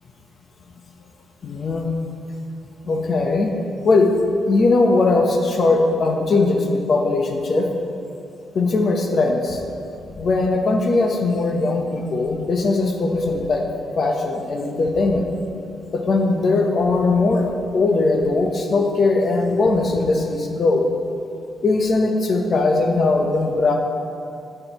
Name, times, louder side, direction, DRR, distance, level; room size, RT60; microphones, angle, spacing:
voice 1, 1.4-1.9 2.8-3.5 3.8-4.1 4.5-7.7 8.5-9.6 10.2-13.6 14.0-15.2 15.9-20.8 21.6-23.8, left 3 dB, 45° left, 3 dB, 0.8 m, -19 dB
9.6 x 8.9 x 3.0 m, 2.6 s
cardioid pair, 145°, 0 cm